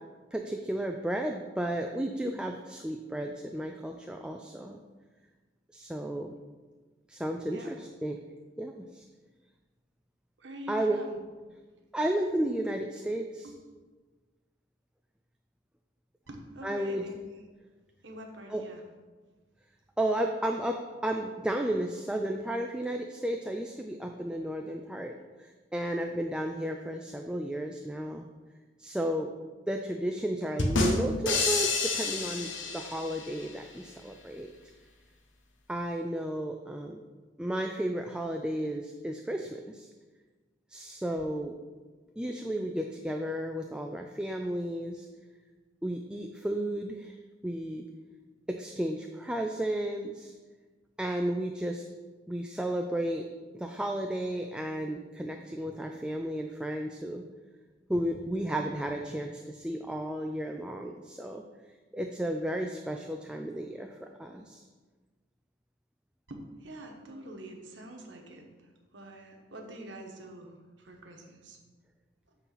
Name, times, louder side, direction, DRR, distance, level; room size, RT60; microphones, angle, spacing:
voice 1, 0.3-4.8 5.7-6.3 7.1-8.2 8.6-9.0 10.7-11.0 11.9-13.5 16.6-17.1 18.5-18.6 20.0-25.1 25.4-28.3 28.8-29.3 29.7-34.5 35.7-37.0 37.4-39.9 40.7-41.6 42.2-45.1 45.8-47.2 47.4-47.9 48.5-50.3 51.0-51.8 52.3-53.3 53.5-57.3 57.9-61.4 61.9-64.6, right 1 dB, 5° right, 3 dB, 0.3 m, -33 dB
voice 2, 10.4-11.2 13.4-13.5 16.3-17.2 18.0-18.8 66.3-68.5 68.9-71.6, right 1 dB, 70° right, 2 dB, 1.1 m, -45 dB
sound 1, 30.6-33.4, left 3 dB, 85° left, 1.0 m, -29 dB
8.2 x 3.9 x 5.8 m, 1.3 s
head